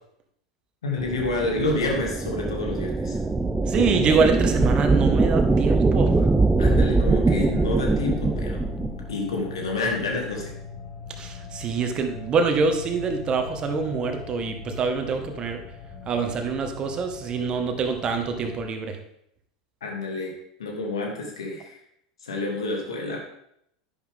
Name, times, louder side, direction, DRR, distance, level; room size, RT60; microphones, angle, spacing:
voice 1, 0.8-3.2 6.6-8.6 9.1-10.5 19.8-21.8 22.2-23.2, left 2 dB, 70° left, 0 dB, 2.6 m, -28 dB
sound 1, 1.0-9.1, right 3 dB, 10° right, 0.6 m, -22 dB
voice 2, 3.7-6.1 11.1-15.6 16.0-19.0, right 5 dB, 30° right, 5 dB, 1.6 m, -25 dB
sound 2, 8.0-18.6, left 5 dB, 30° left, 2.7 m, -41 dB
11.0 x 10.5 x 3.7 m, 0.74 s
figure-of-eight pair, 80°, 3 cm